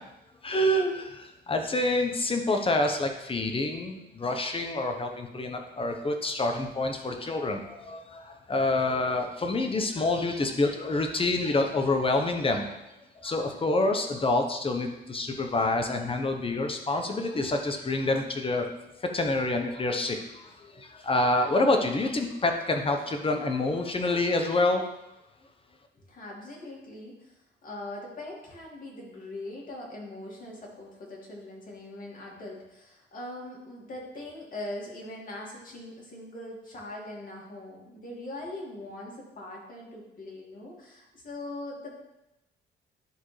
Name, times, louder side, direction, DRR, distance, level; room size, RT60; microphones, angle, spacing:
voice 1, 0.4-12.8 13.2-18.7 19.0-24.8, left 2 dB, 25° left, 4 dB, 1.0 m, -27 dB
voice 2, 25.9-42.0, left 1 dB, 45° left, -3 dB, 2.2 m, -41 dB
11.0 x 3.7 x 3.3 m, 0.91 s
cardioid pair, 90°, 20 cm